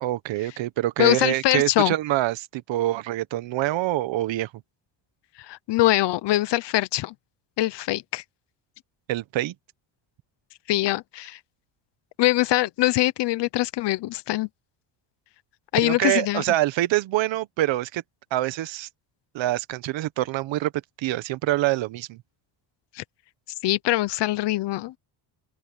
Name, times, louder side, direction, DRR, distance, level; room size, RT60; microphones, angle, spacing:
voice 1, 0.0-4.5 9.1-9.5 15.8-18.0 18.3-18.9 19.3-20.7 21.0-22.2, right 15 dB, 65° right, 1.3 m, -25 dB
voice 2, 1.0-1.9 5.4-7.1 7.6-8.2 10.7-11.4 12.2-14.5 15.7-16.4 22.9-23.0 23.6-24.9, left 16 dB, 60° left, 0.9 m, -23 dB
open air
cardioid pair, 130°, 48 cm